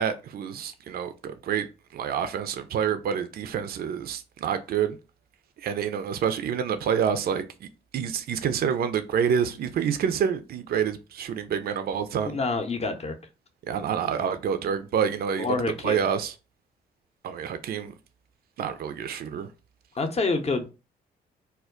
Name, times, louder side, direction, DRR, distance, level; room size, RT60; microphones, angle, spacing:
voice 1, 0.0-1.7 1.9-5.0 5.6-12.4 13.7-15.5 15.8-16.3 17.2-17.9 18.6-19.5, right 8 dB, 50° right, 0.4 m, -28 dB
voice 2, 12.2-13.2 15.4-16.0 19.9-20.7, left 3 dB, 30° left, 0.6 m, -27 dB
2.2 x 2.1 x 3.6 m
hypercardioid pair, 45°, 20 cm